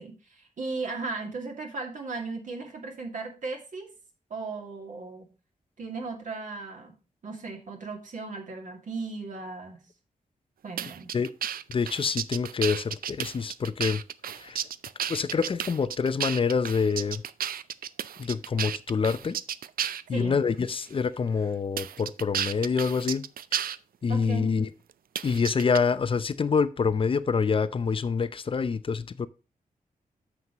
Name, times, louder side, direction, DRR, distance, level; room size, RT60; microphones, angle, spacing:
voice 1, 0.0-3.9 4.3-5.3 5.8-7.0 7.2-9.8 10.6-11.1 20.1-20.4 24.1-24.5, right 3 dB, 60° right, 2.3 m, -36 dB
sound 1, 10.8-20.1 20.8-20.9 21.8-23.8 25.2-25.8, right 9 dB, 90° right, 0.5 m, -33 dB
voice 2, 11.7-14.0 14.4-14.6 15.1-17.2 18.2-19.4 20.1-23.2 24.0-24.7 25.2-29.3, left 5 dB, 35° left, 0.5 m, -26 dB
9.5 x 7.1 x 3.0 m
wide cardioid pair, 155°, 15 cm